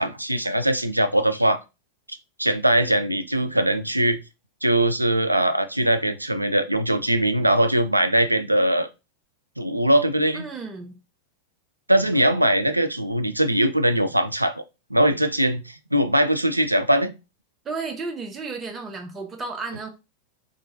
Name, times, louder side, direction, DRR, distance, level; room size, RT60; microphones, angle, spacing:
voice 1, 0.0-1.6 2.4-4.2 4.6-8.9 9.6-10.5 11.9-14.5 14.9-17.1, right 1 dB, 85° right, 0.4 m, -21 dB
voice 2, 10.3-11.0 12.1-12.3 17.6-19.9, right 4 dB, 20° right, 1.0 m, -33 dB
3.7 x 3.4 x 2.6 m
figure-of-eight pair, 90°, 0 cm